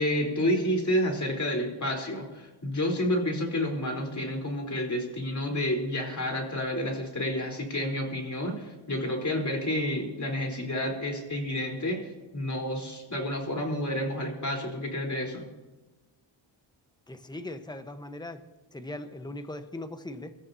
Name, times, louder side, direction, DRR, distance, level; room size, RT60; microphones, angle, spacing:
voice 1, 0.0-12.0 12.3-15.5, left 1 dB, 35° left, 1 dB, 4.2 m, -30 dB
voice 2, 17.1-18.4 18.7-20.4, left 1 dB, 10° left, 8 dB, 1.2 m, -39 dB
24.0 x 14.5 x 2.9 m, 1.1 s
cardioid pair, 70°, 49 cm